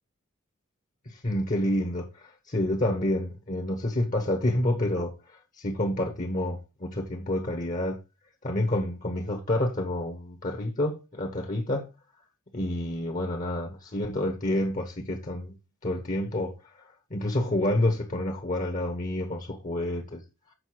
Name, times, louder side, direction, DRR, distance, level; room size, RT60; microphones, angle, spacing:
voice 1, 1.1-8.0 8.4-11.9 12.5-16.6 17.1-20.2, left 1 dB, 40° left, 1.1 m, -29 dB
7.9 x 5.5 x 4.6 m
head